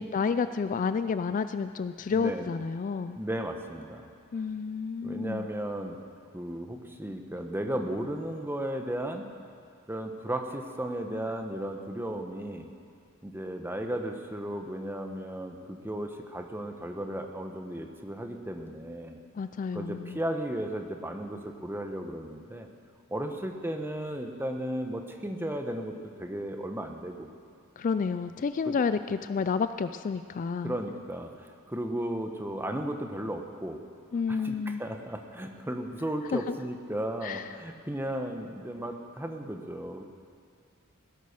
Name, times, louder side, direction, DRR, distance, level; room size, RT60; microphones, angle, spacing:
voice 1, 0.0-3.2 4.3-5.5 19.3-20.2 27.8-30.8 34.1-34.8 36.3-36.6 37.2-37.5, left 5 dB, 40° left, 11 dB, 0.3 m, -30 dB
voice 2, 2.1-2.5 3.2-4.1 5.0-6.0 6.3-9.3 9.9-12.7 13.2-19.2 19.7-22.7 23.1-25.9 26.2-27.3 28.6-28.8 30.6-33.8 34.3-40.0, right 1 dB, 10° right, 4 dB, 1.0 m, -35 dB
17.5 x 10.5 x 6.6 m, 2.2 s
head